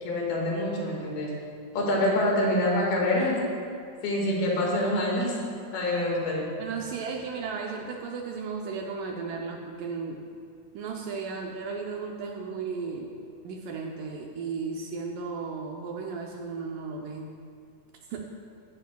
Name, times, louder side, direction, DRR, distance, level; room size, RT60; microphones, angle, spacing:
voice 1, 0.0-1.3 1.7-3.4 4.0-5.3 5.7-6.5, left 1 dB, 80° left, -2 dB, 3.6 m, -26 dB
voice 2, 6.6-10.2 10.7-13.1 13.4-17.3 18.1-18.3, right 5 dB, 80° right, 1 dB, 2.0 m, -35 dB
15.5 x 10.0 x 2.3 m, 2.3 s
omnidirectional pair, 4.3 m